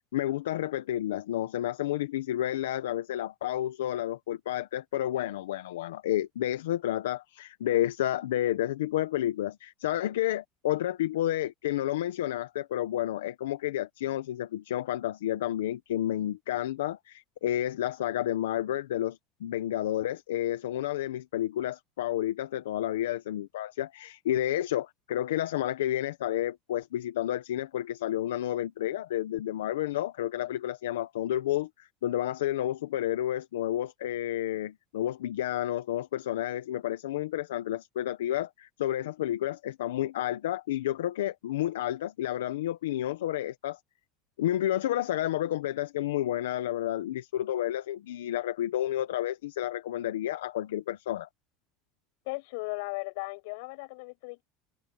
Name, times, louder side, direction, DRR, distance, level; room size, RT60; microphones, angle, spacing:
voice 1, 0.1-43.8 44.4-51.3, left 13 dB, 90° left, 1.3 m, -30 dB
voice 2, 52.3-54.4, left 28 dB, 75° left, 7.4 m, -36 dB
supercardioid pair, 100°, 0 cm